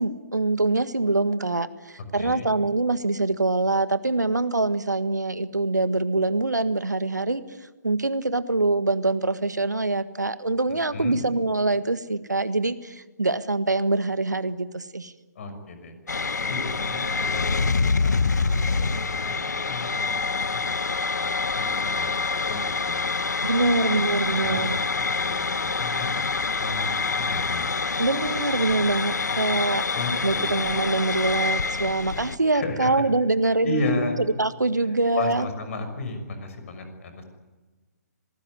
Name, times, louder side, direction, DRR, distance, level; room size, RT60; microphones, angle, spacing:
voice 1, 0.0-1.7 2.1-7.4 7.8-15.1 23.4-24.8 28.0-29.8 30.2-33.9 34.4-35.5, right 2 dB, 85° right, 13 dB, 1.6 m, -24 dB
voice 2, 2.1-2.5 10.7-11.2 15.3-17.6 18.0-18.1 18.4-23.1 23.6-24.0 24.2-26.1 26.6-28.0 29.9-30.6 32.5-33.0 33.6-34.1 35.1-37.2, left 2 dB, 50° left, 8 dB, 6.2 m, -34 dB
sound 1, 16.1-32.4, left 4 dB, 75° left, 1.0 m, -26 dB
26.0 x 19.0 x 9.7 m, 1.2 s
figure-of-eight pair, 135°, 9 cm